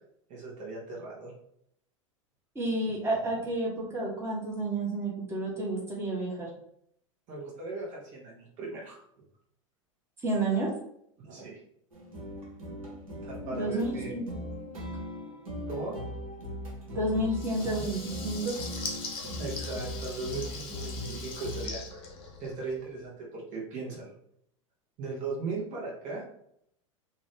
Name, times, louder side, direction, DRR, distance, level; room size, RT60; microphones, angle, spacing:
voice 1, 0.3-1.3 7.3-9.0 11.2-11.6 13.2-14.1 15.7-16.1 17.7-17.9 19.2-22.1 22.4-24.1 25.0-26.2, right 3 dB, 45° right, -3 dB, 1.2 m, -38 dB
voice 2, 2.5-6.5 10.2-10.7 13.4-14.4 16.9-18.0 18.2-18.5, right 2 dB, 15° right, -4 dB, 1.2 m, -30 dB
sound 1, 11.9-21.9, equal, 85° right, 1.0 m, -39 dB
Water tap faucet / Liquid, 17.3-22.8, left 4 dB, 30° left, 0.9 m, -41 dB
2.7 x 2.5 x 3.3 m, 0.70 s
hypercardioid pair, 95°, 17 cm